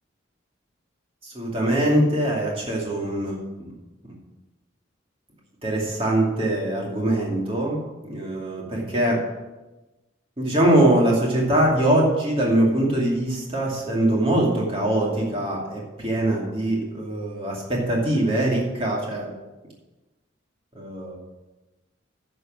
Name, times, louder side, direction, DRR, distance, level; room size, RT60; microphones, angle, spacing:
voice 1, 1.2-3.7 5.6-7.8 8.0-9.2 10.4-19.3 20.7-21.2, right 1 dB, 30° right, -3 dB, 2.5 m, -22 dB
10.5 x 6.6 x 6.1 m, 1.1 s
head